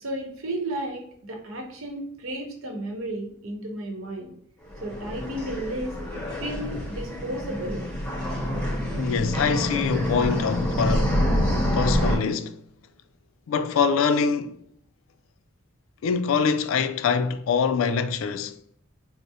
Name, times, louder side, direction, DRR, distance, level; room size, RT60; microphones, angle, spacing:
voice 1, 0.0-4.3 4.8-6.0 6.4-7.8, right 1 dB, 80° right, 0.8 m, -33 dB
sound 1, 4.6-12.2, equal, 5° left, 0.9 m, -27 dB
voice 2, 9.0-11.2 11.7-12.6 13.5-14.6 16.0-18.6, left 5 dB, 75° left, 0.3 m, -24 dB
4.5 x 2.0 x 2.7 m
head